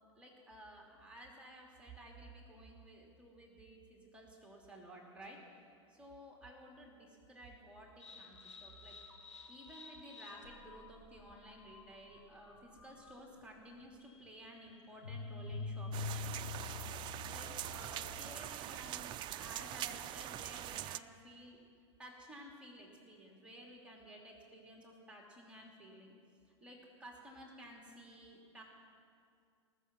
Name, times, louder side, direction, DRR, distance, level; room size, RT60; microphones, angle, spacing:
voice 1, 0.2-5.4 5.9-9.0 9.5-16.7 17.0-21.6 22.0-26.1 26.6-28.6, right 1 dB, 5° right, -1 dB, 2.7 m, -54 dB
sound 1, 8.0-18.6, left 4 dB, 85° left, 1.4 m, -48 dB
sound 2, 15.9-21.0, right 12 dB, 30° right, 0.4 m, -43 dB
19.0 x 6.9 x 7.3 m, 2.3 s
figure-of-eight pair, 95°, 15 cm